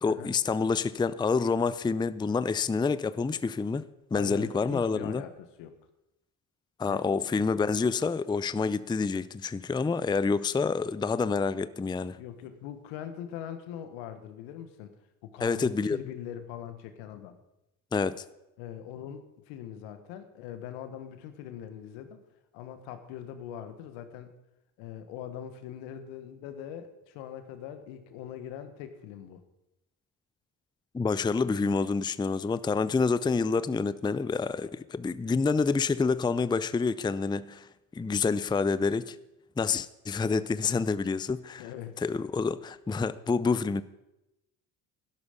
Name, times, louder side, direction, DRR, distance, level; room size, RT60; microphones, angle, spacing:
voice 1, 0.0-5.2 6.8-12.2 15.4-16.0 17.9-18.2 30.9-39.2 39.6-41.7 42.0-43.8, left 4 dB, 10° left, 0.5 m, -28 dB
voice 2, 4.1-5.8 6.9-7.1 12.2-15.0 15.2-17.4 18.6-22.2 22.5-24.4 24.8-29.4 41.6-42.0, left 9 dB, 80° left, 1.5 m, -42 dB
12.5 x 11.5 x 5.2 m
hypercardioid pair, 65°, 45 cm